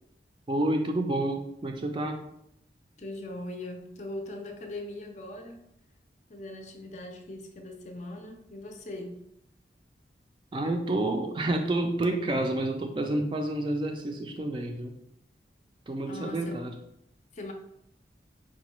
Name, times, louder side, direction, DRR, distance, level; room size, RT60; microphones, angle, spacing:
voice 1, 0.5-2.2 10.5-15.0 15.9-16.8, right 1 dB, 25° right, 4 dB, 0.3 m, -29 dB
voice 2, 3.0-5.7 6.3-9.2 16.1-16.6 17.3-17.5, left 1 dB, 40° left, 3 dB, 0.4 m, -40 dB
4.8 x 2.2 x 3.0 m, 0.77 s
head